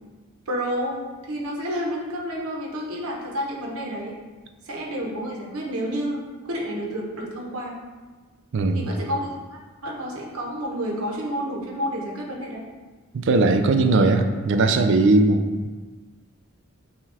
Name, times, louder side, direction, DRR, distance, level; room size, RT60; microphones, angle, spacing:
voice 1, 0.5-4.2 4.6-7.8 8.7-12.6, equal, 90° right, -1 dB, 0.8 m, -30 dB
voice 2, 8.5-8.9 13.1-15.4, right 3 dB, 55° right, 6 dB, 0.3 m, -19 dB
5.6 x 2.3 x 3.3 m, 1.4 s
head